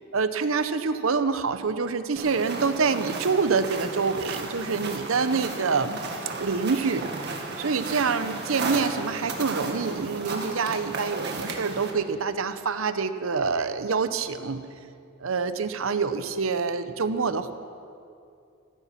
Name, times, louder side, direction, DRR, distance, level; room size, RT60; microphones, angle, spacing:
voice 1, 0.1-6.0 6.4-7.1 7.6-14.6 15.2-17.5, right 5 dB, 75° right, 11 dB, 0.7 m, -26 dB
sound 1, 2.2-11.9, right 3 dB, 55° right, 1.8 m, -34 dB
15.0 x 14.0 x 5.9 m, 2.5 s
head